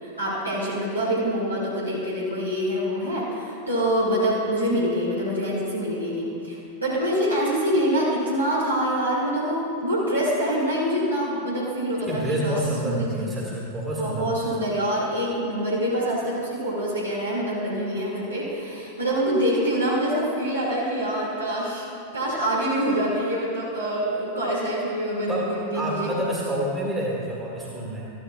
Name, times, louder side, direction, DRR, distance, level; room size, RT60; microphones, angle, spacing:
voice 1, 0.0-13.3 14.0-21.9 22.1-26.1, equal, 85° right, -8 dB, 2.3 m, -25 dB
voice 2, 12.1-14.3 25.3-28.1, right 1 dB, 15° right, -4 dB, 1.9 m, -28 dB
14.0 x 12.5 x 2.4 m, 2.7 s
figure-of-eight pair, 90°, 0 cm